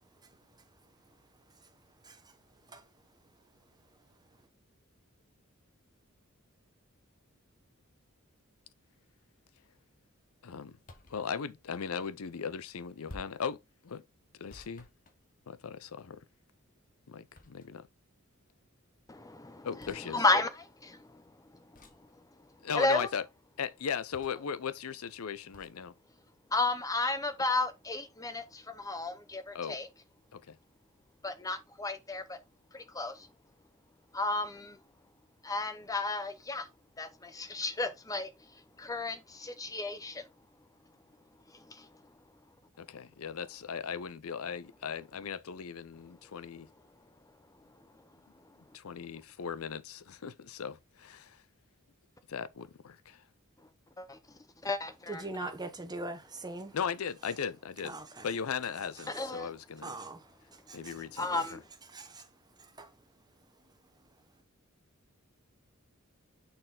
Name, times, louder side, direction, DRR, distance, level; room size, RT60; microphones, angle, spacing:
voice 1, 2.0-2.4 2.7-2.9 55.1-56.8 57.8-58.3 59.0-59.2 59.8-61.5 61.9-62.3 62.6-62.9, right 2 dB, 20° right, 1.1 m, -43 dB
voice 2, 10.4-10.8 11.1-13.6 13.8-14.0 14.4-14.9 15.5-16.2 17.1-17.9 19.6-20.2 22.6-23.2 23.6-25.9 29.5-29.8 30.3-30.6 42.8-46.7 48.7-51.4 52.3-53.2 56.7-58.0 58.2-59.9 60.7-61.6, left 6 dB, 80° left, 0.6 m, -38 dB
sound 1, 10.8-11.2 13.1-13.5 14.5-15.7 17.3-17.9 19.8-20.0 21.7-22.1 24.1-24.5 25.5-25.8, left 1 dB, 40° left, 1.2 m, -52 dB
voice 3, 19.1-19.7 20.1-21.2 22.8-23.1 26.5-29.9 31.2-32.4 32.7-33.3 34.1-34.8 35.4-36.7 37.0-38.3 38.8-40.2 41.5-41.9 54.0-54.2 54.6-55.5 59.1-59.5 61.2-61.6, left 2 dB, 15° left, 0.7 m, -33 dB
6.6 x 4.1 x 3.8 m
head